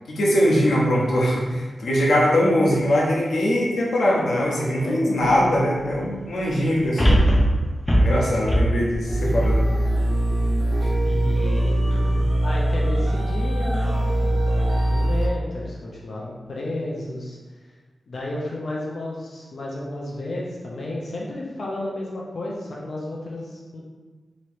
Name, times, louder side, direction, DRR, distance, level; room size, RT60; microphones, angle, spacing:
voice 1, 0.1-7.3 8.0-9.6, equal, 75° left, -4 dB, 0.9 m, -21 dB
voice 2, 4.7-5.3 8.3-8.7 11.0-17.4 18.1-23.8, left 1 dB, 55° left, -4 dB, 0.6 m, -32 dB
sound 1, 7.0-10.3 10.8-10.9, equal, 15° left, 0.6 m, -20 dB
sound 2, 9.1-15.3, right 1 dB, 30° right, 0.8 m, -22 dB
3.0 x 3.0 x 4.5 m, 1.3 s
wide cardioid pair, 160°, 0 cm